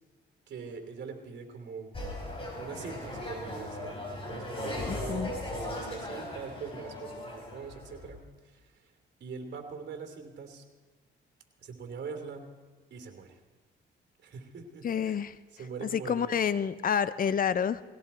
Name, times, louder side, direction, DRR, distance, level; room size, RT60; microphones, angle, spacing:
voice 1, 0.5-1.9 2.6-4.0 4.2-8.9 9.2-10.6 11.6-12.5 12.9-13.4 14.2-15.2 15.5-16.4, right 5 dB, 60° right, 5 dB, 3.0 m, -42 dB
sound 1, 1.9-8.1, left 1 dB, 25° left, 5.5 m, -38 dB
voice 2, 4.9-5.3 14.8-15.4 15.8-17.8, left 7 dB, 45° left, 15 dB, 0.6 m, -29 dB
19.5 x 17.5 x 4.3 m, 1.3 s
cardioid pair, 90°, 20 cm